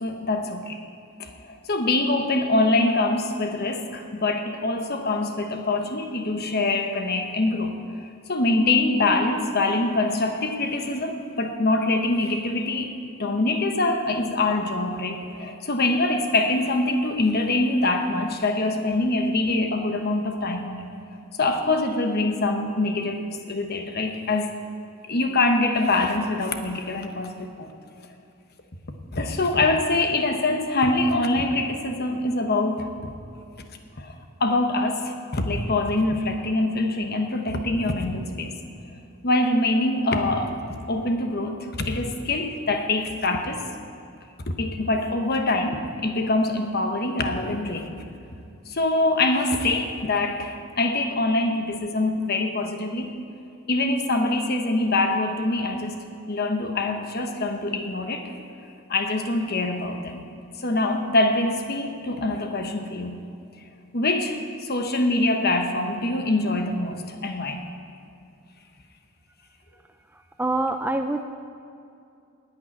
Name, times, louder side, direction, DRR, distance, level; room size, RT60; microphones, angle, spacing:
voice 1, 0.0-0.8 1.2-7.8 8.3-12.9 13.2-20.8 21.4-24.5 25.1-27.7 29.1-32.9 34.0-34.1 34.4-38.6 39.2-43.7 44.5-48.0 48.7-53.1 53.7-58.3 58.9-60.2 60.6-63.2 63.9-67.6, left 2 dB, 45° left, 5 dB, 1.1 m, -24 dB
voice 2, 70.1-71.2, right 2 dB, 10° right, 6 dB, 0.3 m, -26 dB
10.5 x 9.0 x 9.4 m, 2.5 s
head